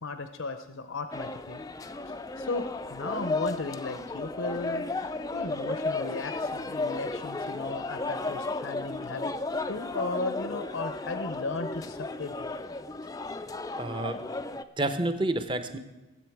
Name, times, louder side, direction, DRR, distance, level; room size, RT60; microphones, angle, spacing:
voice 1, 0.0-1.6 2.0-9.3 9.7-12.5, left 3 dB, 70° left, 8 dB, 0.7 m, -36 dB
sound 1, 1.1-14.6, left 2 dB, 15° left, 0.4 m, -34 dB
voice 2, 13.8-14.2 14.8-15.8, right 1 dB, 25° right, 9 dB, 0.8 m, -29 dB
20.0 x 8.2 x 4.7 m, 1.1 s
head